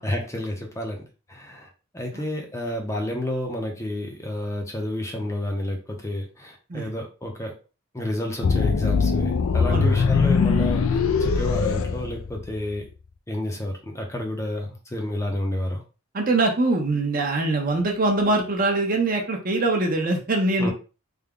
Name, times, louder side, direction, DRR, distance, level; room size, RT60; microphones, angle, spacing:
voice 1, 0.0-7.6 7.9-12.9 13.3-15.8 20.6-20.7, left 1 dB, 15° left, 1 dB, 0.6 m, -30 dB
sound 1, 8.4-12.7, left 5 dB, 80° left, 0.4 m, -21 dB
voice 2, 16.1-20.7, right 2 dB, 45° right, 2 dB, 0.8 m, -23 dB
3.4 x 2.2 x 3.6 m, 0.33 s
head